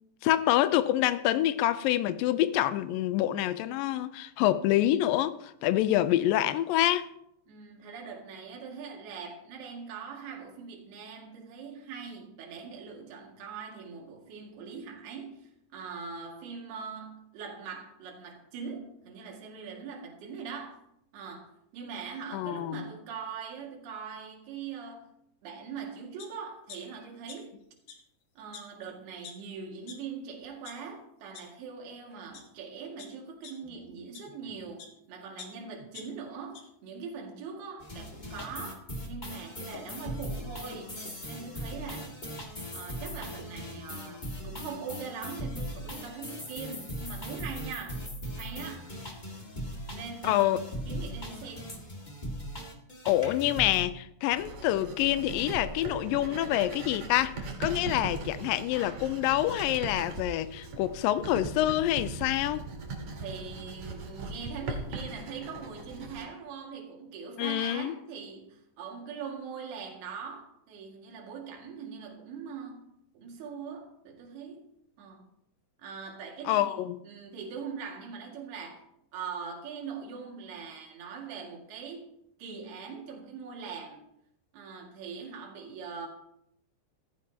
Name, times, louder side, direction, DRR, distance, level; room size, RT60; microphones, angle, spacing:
voice 1, 0.2-7.1 22.3-22.8 50.2-50.6 53.1-62.6 67.4-67.9 76.5-77.0, left 14 dB, 90° left, 2.0 m, -27 dB
voice 2, 7.5-20.8 21.1-25.1 25.4-27.5 28.4-42.1 42.7-48.0 48.4-48.9 49.9-50.6 50.9-51.9 57.7-58.0 63.2-74.6 75.0-75.2 75.8-78.8 79.1-82.1 82.4-84.0 84.5-86.1, right 6 dB, 75° right, 4.1 m, -42 dB
sound 1, 26.2-26.3 26.7-27.6 27.8-27.9 28.5-28.6 29.2-29.3 29.9-30.0 30.4-30.7 31.3-31.4 32.1-32.4 33.0-34.9 35.4-36.6 37.0-37.1, left 6 dB, 60° left, 3.2 m, -47 dB
sound 2, 37.8-53.8, equal, 35° left, 0.7 m, -39 dB
Writing, 54.3-66.2, right 3 dB, 50° right, 2.8 m, -39 dB
16.5 x 15.0 x 2.9 m
omnidirectional pair, 4.7 m